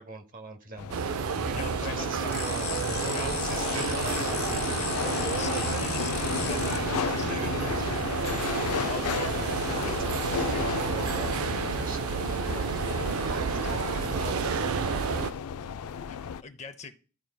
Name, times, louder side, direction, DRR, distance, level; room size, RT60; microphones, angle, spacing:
voice 1, 0.0-5.9 6.3-9.8 10.2-12.9 13.2-15.5 15.8-16.0, right 3 dB, 40° right, 8 dB, 0.9 m, -41 dB
sound 1, 0.8-16.4, left 7 dB, 85° left, 0.4 m, -34 dB
sound 2, 0.9-15.3, right 6 dB, 75° right, 0.4 m, -30 dB
voice 2, 1.5-2.4 3.1-3.7 4.1-4.3 4.8-4.9 5.4-7.4 8.8-9.3 9.9-10.2 13.6-13.7 16.1-17.0, left 4 dB, 30° left, 9 dB, 0.5 m, -42 dB
sound 3, 2.3-6.8, left 11 dB, 70° left, 1.2 m, -37 dB
12.5 x 4.6 x 2.2 m, 0.37 s
head